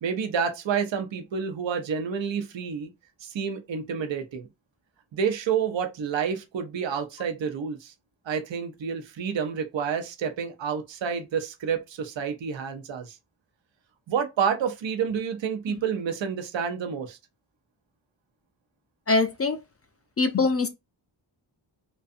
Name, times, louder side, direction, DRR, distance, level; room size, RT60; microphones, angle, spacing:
voice 1, 0.0-2.9 3.2-4.5 5.1-7.9 8.3-13.2 14.1-17.2, right 7 dB, 65° right, 0.7 m, -29 dB
voice 2, 19.1-19.6 20.2-20.7, left 3 dB, 30° left, 0.4 m, -23 dB
2.6 x 2.3 x 2.4 m
cardioid pair, 50°, 48 cm